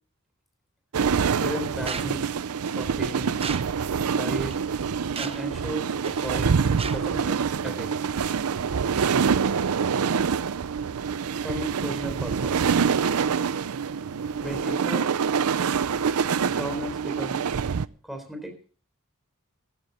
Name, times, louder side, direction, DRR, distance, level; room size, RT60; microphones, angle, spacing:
sound 1, 0.9-17.9, right 6 dB, 80° right, 0.5 m, -26 dB
voice 1, 1.2-2.3 2.7-3.4 4.1-4.6 5.2-6.5 6.9-7.9 11.4-12.7 14.4-15.1 16.4-17.4 18.0-18.5, equal, ahead, 3 dB, 4.0 m, -35 dB
sound 2, 1.9-2.1 3.4-3.7 4.5-4.6 5.2-5.5 6.0-6.3 6.8-7.0, right 6 dB, 25° right, 0.8 m, -34 dB
14.5 x 13.0 x 4.2 m, 0.40 s
head